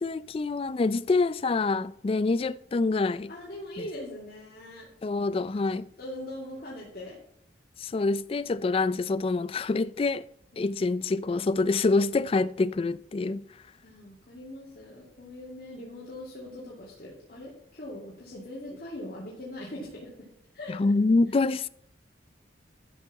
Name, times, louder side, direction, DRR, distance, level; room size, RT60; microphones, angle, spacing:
voice 1, 0.0-3.3 5.0-5.9 7.8-10.3 10.6-13.4 20.7-21.7, left 3 dB, 30° left, 0.3 m, -26 dB
voice 2, 3.3-4.9 6.0-7.2 10.5-10.8 13.8-20.1 20.5-20.8, left 1 dB, 55° left, 2.6 m, -41 dB
12.5 x 4.6 x 7.0 m
head